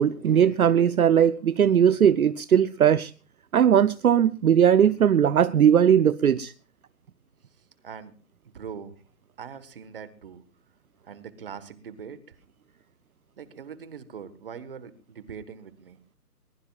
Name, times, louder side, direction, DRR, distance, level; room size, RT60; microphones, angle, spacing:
voice 1, 0.0-3.1 3.5-6.5, right 9 dB, 65° right, 0.7 m, -19 dB
voice 2, 8.5-9.0 9.4-10.4 11.0-12.4 13.4-16.0, right 7 dB, 35° right, 1.5 m, -41 dB
22.0 x 21.0 x 2.4 m
hypercardioid pair, 165°, 47 cm